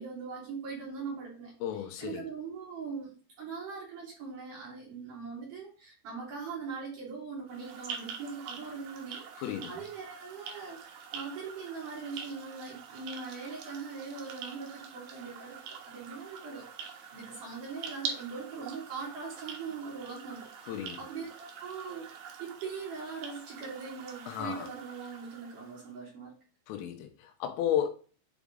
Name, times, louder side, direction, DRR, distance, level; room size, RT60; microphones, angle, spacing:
voice 1, 0.0-10.8 11.1-22.1 22.4-26.3, right 5 dB, 45° right, 3.8 m, -41 dB
voice 2, 1.6-2.2 9.4-9.8 20.7-21.0 24.3-24.7 26.7-27.9, left 10 dB, 85° left, 3.6 m, -33 dB
sound 1, 7.5-25.9, right 6 dB, 70° right, 2.3 m, -45 dB
8.4 x 4.2 x 3.7 m
omnidirectional pair, 5.8 m